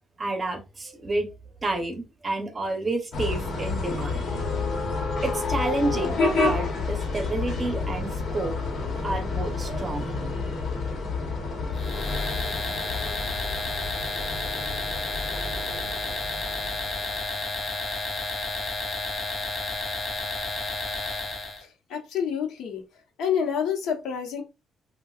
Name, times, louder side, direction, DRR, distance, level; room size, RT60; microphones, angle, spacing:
voice 1, 0.2-1.3 1.6-4.2 5.2-8.5 9.0-10.2, right 2 dB, 30° right, 0.8 m, -30 dB
sound 1, 3.1-17.4, left 3 dB, 60° left, 1.1 m, -29 dB
sound 2, 11.7-21.6, left 2 dB, 25° left, 1.0 m, -31 dB
voice 2, 21.6-22.8 23.2-24.4, left 7 dB, 80° left, 0.9 m, -28 dB
3.5 x 2.2 x 2.4 m
cardioid pair, 90°, 0 cm